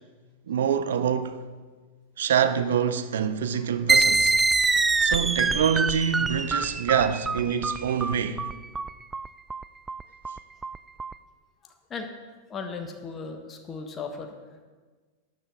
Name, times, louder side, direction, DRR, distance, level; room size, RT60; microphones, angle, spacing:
voice 1, 0.5-1.5 2.2-4.4 5.0-8.4, right 8 dB, 60° right, 0.7 m, -25 dB
sound 1, 3.9-11.1, right 3 dB, 15° right, 0.3 m, -25 dB
voice 2, 11.6-12.1 12.5-14.6, left 5 dB, 25° left, 1.3 m, -38 dB
12.5 x 10.0 x 3.8 m
figure-of-eight pair, 90°, 0 cm